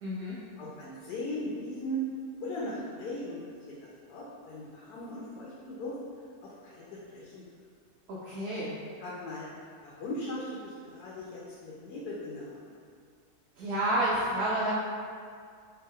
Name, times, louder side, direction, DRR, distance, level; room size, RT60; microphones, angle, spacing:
voice 1, 0.0-0.4 8.1-8.8 13.6-14.7, right 1 dB, 75° right, -6 dB, 1.1 m, -30 dB
voice 2, 0.6-2.0 2.4-3.4 3.8-5.9 6.4-7.4 9.0-9.5 9.8-12.6, left 1 dB, 90° left, -5 dB, 1.2 m, -38 dB
3.4 x 2.9 x 3.5 m, 2.2 s
omnidirectional pair, 1.7 m